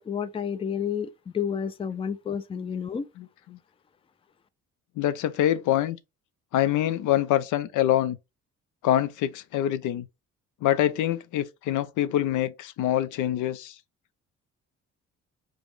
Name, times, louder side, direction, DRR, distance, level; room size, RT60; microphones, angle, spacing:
voice 1, 0.0-3.0, left 7 dB, 20° left, 0.4 m, -30 dB
voice 2, 3.2-3.6 5.0-6.0 6.5-8.2 8.8-10.1 10.6-13.7, left 12 dB, 80° left, 0.5 m, -25 dB
5.0 x 2.1 x 3.2 m
cardioid pair, 90°, 30 cm